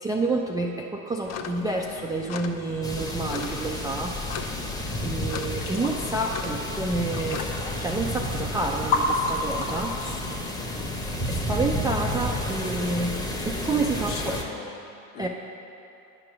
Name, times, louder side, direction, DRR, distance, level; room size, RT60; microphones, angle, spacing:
voice 1, 0.0-4.1 5.0-7.4 7.8-9.9 11.3-13.2 13.4-14.4 15.2-15.3, right 2 dB, 10° right, -1 dB, 0.3 m, -29 dB
sound 1, 1.3-7.5, left 7 dB, 40° left, 0.6 m, -39 dB
sound 2, 2.8-14.4, left 1 dB, 10° left, 0.9 m, -31 dB
sound 3, 4.3-11.7, left 3 dB, 80° left, 1.3 m, -33 dB
voice 2, 10.6-10.9 14.0-14.9 15.1-15.3, left 6 dB, 55° left, 1 dB, 1.3 m, -40 dB
9.4 x 4.9 x 5.9 m, 2.7 s
hypercardioid pair, 95°, 43 cm